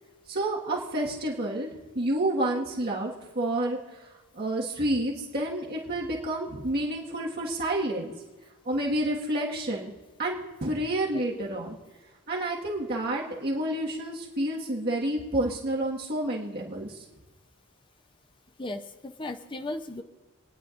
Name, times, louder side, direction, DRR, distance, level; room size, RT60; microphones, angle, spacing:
voice 1, 0.3-1.7 1.9-3.8 4.3-8.1 8.6-9.9 10.2-11.8 12.3-16.9, right 1 dB, 45° right, -3 dB, 1.7 m, -29 dB
voice 2, 18.6-20.0, left 2 dB, 20° left, 6 dB, 0.6 m, -36 dB
29.5 x 10.0 x 2.6 m, 1.2 s
head